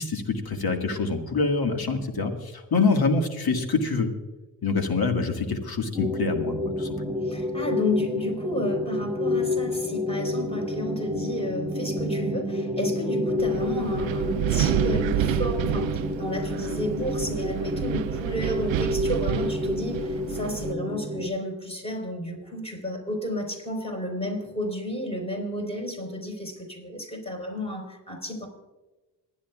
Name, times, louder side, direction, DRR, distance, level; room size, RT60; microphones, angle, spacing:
voice 1, 0.0-4.1 4.6-7.1, left 4 dB, 50° left, 5 dB, 1.9 m, -26 dB
sound 1, 5.9-21.3, left 1 dB, 5° right, 1.9 m, -29 dB
voice 2, 7.2-28.5, left 1 dB, 15° left, 1 dB, 4.4 m, -32 dB
Wind, 13.4-20.7, right 13 dB, 80° right, 0.5 m, -29 dB
26.5 x 10.0 x 2.4 m, 1.1 s
supercardioid pair, 45°, 46 cm